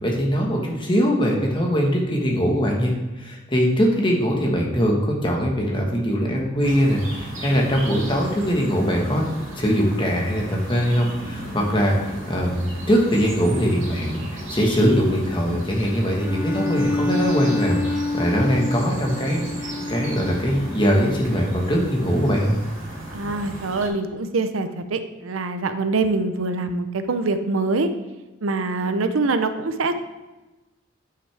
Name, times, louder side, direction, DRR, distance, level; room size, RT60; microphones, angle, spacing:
voice 1, 0.0-9.2 9.6-22.6, equal, 25° left, -1 dB, 1.3 m, -22 dB
sound 1, 6.6-23.9, right 1 dB, 65° right, 2.6 m, -36 dB
Bowed string instrument, 16.2-20.9, left 3 dB, 10° right, 1.2 m, -27 dB
voice 2, 23.1-27.9 28.4-29.9, right 3 dB, 85° right, 9 dB, 0.6 m, -24 dB
9.3 x 5.9 x 3.4 m, 1.1 s
head